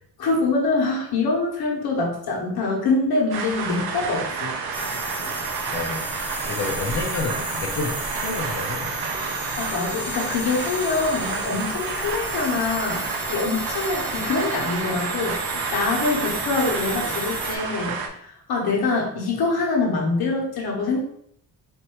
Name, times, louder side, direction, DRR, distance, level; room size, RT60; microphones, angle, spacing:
voice 1, 0.2-4.5 9.6-21.0, left 3 dB, 80° left, -2 dB, 1.2 m, -25 dB
sound 1, 3.3-18.1, right 5 dB, 85° right, 0.7 m, -30 dB
sound 2, 4.7-17.6, left 1 dB, 5° left, 0.4 m, -34 dB
voice 2, 5.7-6.0 6.5-9.1, left 3 dB, 45° left, -1 dB, 0.7 m, -29 dB
4.4 x 2.7 x 3.0 m, 0.70 s
cardioid pair, 140°, 37 cm